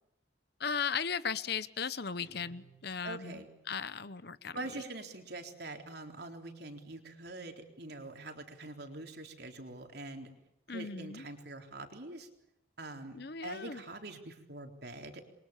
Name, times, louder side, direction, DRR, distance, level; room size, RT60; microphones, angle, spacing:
voice 1, 0.6-3.4 3.7-4.6 10.7-11.2 13.1-13.8, left 6 dB, 55° left, 15 dB, 1.0 m, -37 dB
Guitar, 2.2-3.5, right 1 dB, 75° left, 5.9 m, -60 dB
voice 2, 3.0-3.5 4.5-10.3 10.7-12.3 12.8-15.3, right 2 dB, 55° right, 4 dB, 4.0 m, -44 dB
28.5 x 23.5 x 7.3 m, 0.86 s
head